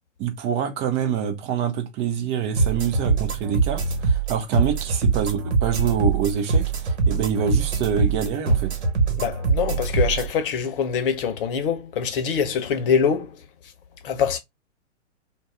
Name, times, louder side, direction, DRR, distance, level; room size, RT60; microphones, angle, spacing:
voice 1, 0.2-8.8, right 7 dB, 15° right, 0.5 m, -26 dB
sound 1, 2.6-10.3, right 4 dB, 60° right, 1.3 m, -23 dB
voice 2, 9.2-13.4 14.0-14.4, left 7 dB, 45° left, 0.9 m, -24 dB
2.5 x 2.2 x 3.5 m
figure-of-eight pair, 115°, 37 cm